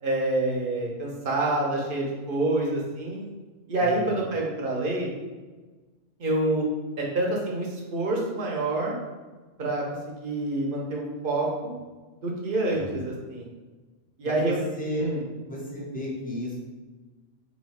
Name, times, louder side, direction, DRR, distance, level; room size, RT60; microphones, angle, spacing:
voice 1, 0.0-3.2 3.7-5.1 6.2-6.6 7.0-9.0 9.6-9.8 10.2-11.7 12.2-13.5 14.2-14.6 15.0-15.2, right 2 dB, 50° right, -2 dB, 0.8 m, -27 dB
voice 2, 3.8-4.2 12.7-13.0 14.2-15.0 15.5-16.6, equal, 10° left, -5 dB, 0.6 m, -33 dB
3.1 x 2.7 x 4.1 m, 1.3 s
omnidirectional pair, 1.3 m